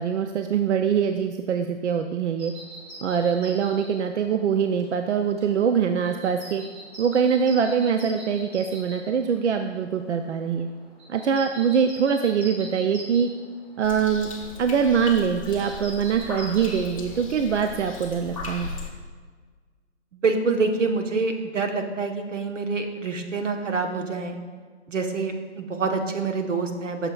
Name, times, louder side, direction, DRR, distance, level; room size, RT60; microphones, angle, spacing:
voice 1, 0.0-2.5 3.0-6.6 7.0-10.7 11.1-13.3 13.8-14.3 14.6-18.7, right 7 dB, 70° right, 6 dB, 0.5 m, -23 dB
sound 1, 2.4-16.8, right 1 dB, 20° right, 1.0 m, -44 dB
sound 2, 13.8-18.9, left 3 dB, 30° left, 0.6 m, -37 dB
voice 2, 20.2-24.4 24.9-27.1, right 4 dB, 90° right, 4 dB, 1.1 m, -26 dB
8.7 x 6.6 x 2.4 m, 1.5 s
hypercardioid pair, 165°, 36 cm